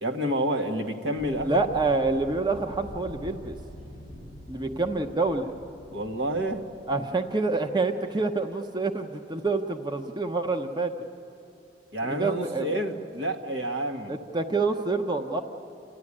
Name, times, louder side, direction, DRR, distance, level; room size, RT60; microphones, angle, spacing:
voice 1, 0.0-1.6 5.9-6.6 11.9-14.2, right 1 dB, 80° right, 4 dB, 1.6 m, -29 dB
sound 1, 1.2-7.3, equal, 60° right, 6.3 m, -44 dB
voice 2, 1.4-3.6 4.5-5.6 6.9-10.9 12.0-12.7 14.1-15.4, right 3 dB, 25° right, 6 dB, 0.8 m, -27 dB
29.0 x 13.5 x 9.9 m, 2.6 s
head